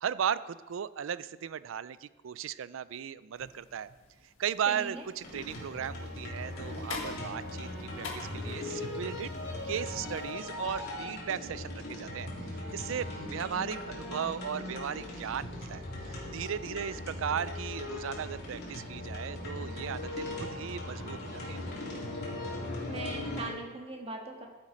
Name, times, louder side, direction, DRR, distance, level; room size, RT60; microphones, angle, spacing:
voice 1, 0.0-3.9 4.4-7.7 8.0-9.3 9.6-21.6, right 8 dB, 75° right, 17 dB, 0.4 m, -36 dB
sound 1, 3.3-10.3, left 4 dB, 80° left, 1.7 m, -47 dB
voice 2, 4.7-5.1 22.9-24.5, right 2 dB, 30° right, 2 dB, 1.5 m, -40 dB
sound 2, 5.2-23.5, left 1 dB, 55° left, 3.1 m, -39 dB
13.0 x 7.4 x 5.1 m, 1.2 s
head